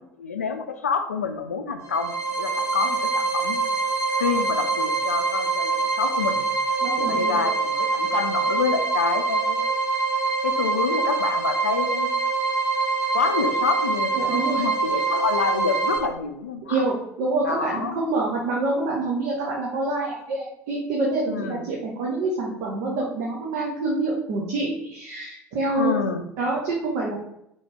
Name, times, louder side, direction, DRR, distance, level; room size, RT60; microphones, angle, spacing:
voice 1, 0.2-3.6 4.2-6.4 7.0-9.7 10.4-12.1 13.1-16.8 17.4-18.0 21.3-21.6 25.8-26.2, left 5 dB, 80° left, 7 dB, 0.4 m, -27 dB
sound 1, 1.8-16.0, right 4 dB, 45° right, 1.3 m, -24 dB
voice 2, 6.8-7.4 14.1-14.6 16.6-26.0 26.4-27.2, right 2 dB, 60° right, -3 dB, 0.8 m, -26 dB
4.1 x 3.1 x 3.4 m, 0.79 s
figure-of-eight pair, 60°, 8 cm